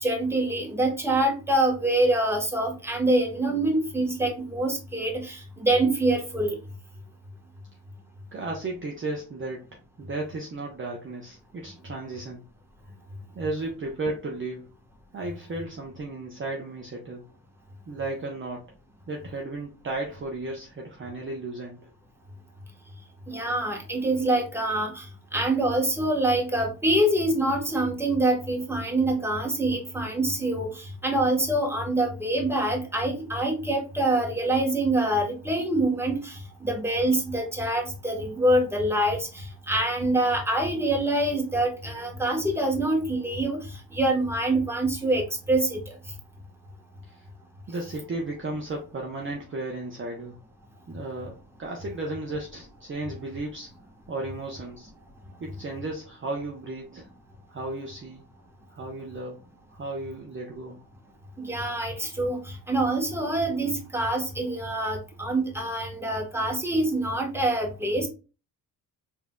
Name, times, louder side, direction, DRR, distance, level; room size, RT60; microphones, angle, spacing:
voice 1, 0.0-6.6 23.3-25.1 25.3-43.6 43.9-45.8 61.4-68.1, right 1 dB, 5° right, 1 dB, 1.2 m, -25 dB
voice 2, 8.3-9.7 10.0-12.4 13.3-14.7 15.1-17.2 17.9-18.7 19.1-21.9 47.1-47.2 47.7-50.4 50.9-53.7 54.1-54.9 55.4-57.1 57.5-58.2 58.7-59.4 59.7-60.8, right 2 dB, 30° right, -1 dB, 0.8 m, -34 dB
4.0 x 2.8 x 2.3 m, 0.32 s
supercardioid pair, 60°, 44 cm